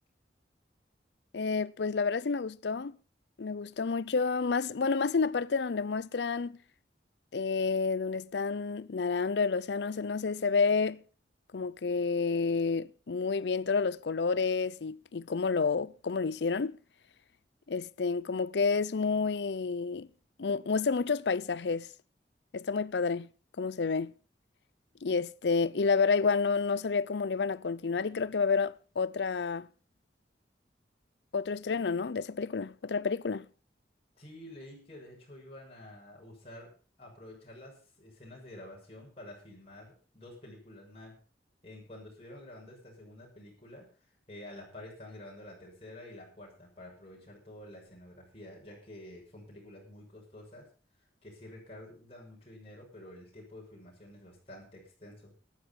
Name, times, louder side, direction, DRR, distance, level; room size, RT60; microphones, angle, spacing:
voice 1, 1.3-3.0 3.4-6.6 7.3-11.0 11.5-16.8 17.7-20.1 20.4-21.9 22.5-23.3 23.6-24.1 25.0-29.7 31.3-33.5, left 4 dB, 80° left, 0.6 m, -29 dB
voice 2, 34.2-41.2 41.6-50.7 51.2-55.3, left 1 dB, 35° left, 6.3 m, -49 dB
14.5 x 11.5 x 5.4 m
head